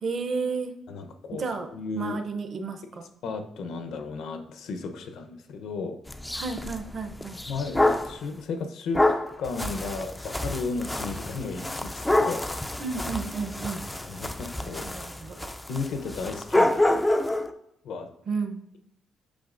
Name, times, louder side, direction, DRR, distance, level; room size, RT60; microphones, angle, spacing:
voice 1, 0.0-0.7 1.4-1.7 2.0-3.1 6.3-7.4 12.8-13.8 14.6-15.5 18.3-18.6, right 4 dB, 40° right, 6 dB, 0.7 m, -32 dB
voice 2, 0.9-2.2 3.2-6.0 7.5-9.1 9.4-12.5 14.1-14.8 15.7-17.0 17.8-18.1, left 4 dB, 70° left, 7 dB, 0.8 m, -34 dB
sound 1, 6.1-8.2 8.9-17.5, left 1 dB, 10° left, 0.3 m, -27 dB
8.5 x 5.7 x 2.5 m, 0.78 s
cardioid pair, 160°, 0 cm